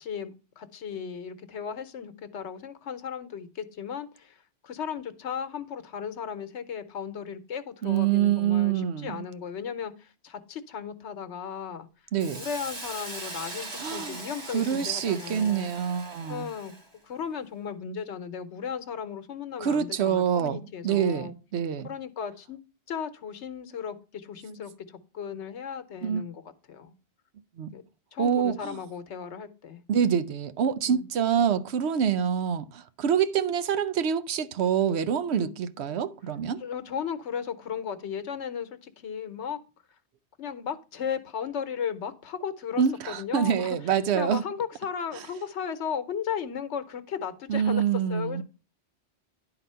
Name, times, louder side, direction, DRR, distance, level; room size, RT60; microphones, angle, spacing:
voice 1, 0.0-4.4 4.6-11.9 12.3-15.7 16.3-16.7 17.0-21.3 21.8-22.6 22.9-24.7 25.1-26.4 26.7-26.9 27.7-27.8 28.1-29.8 30.9-31.0 35.3-35.5 36.6-39.6 40.4-48.4, left 7 dB, 85° left, 1.1 m, -35 dB
voice 2, 7.8-9.3 12.1-12.4 13.8-14.2 14.5-16.5 19.6-21.9 26.0-26.2 27.6-27.7 28.2-28.8 29.9-36.6 42.8-44.4 47.5-48.4, right 8 dB, 75° right, 0.9 m, -26 dB
Hiss, 12.2-16.9, right 2 dB, 40° right, 1.6 m, -40 dB
10.5 x 4.0 x 5.5 m
omnidirectional pair, 1.1 m